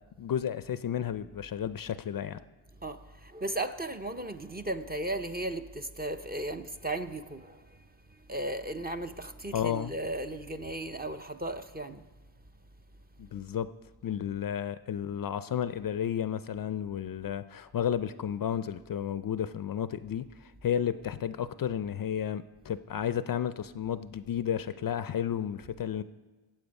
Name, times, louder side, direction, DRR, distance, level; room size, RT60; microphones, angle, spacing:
voice 1, 0.2-2.4 9.5-9.9 13.2-13.7 14.0-20.3 20.6-26.0, left 9 dB, 45° left, 0.4 m, -32 dB
voice 2, 2.8-7.6 8.3-12.0, right 1 dB, 20° right, 0.5 m, -36 dB
18.0 x 7.7 x 5.3 m
cardioid pair, 85°, 49 cm